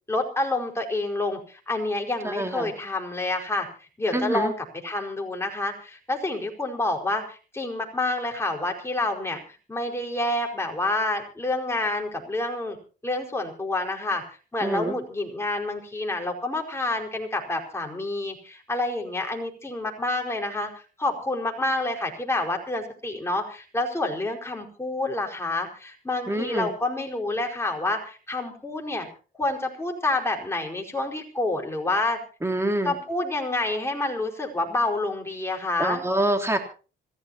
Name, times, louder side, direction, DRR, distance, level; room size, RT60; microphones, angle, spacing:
voice 1, 0.1-3.7 4.0-4.5 4.8-9.4 9.7-12.8 13.0-29.1 29.4-32.2 32.8-36.0, left 2 dB, 15° left, 1 dB, 4.8 m, -28 dB
voice 2, 2.2-2.7 4.1-4.5 14.6-14.9 26.3-26.7 32.4-32.9 35.8-36.6, right 1 dB, 15° right, 4 dB, 3.3 m, -26 dB
26.0 x 15.5 x 2.9 m, 0.36 s
cardioid pair, 90°, 20 cm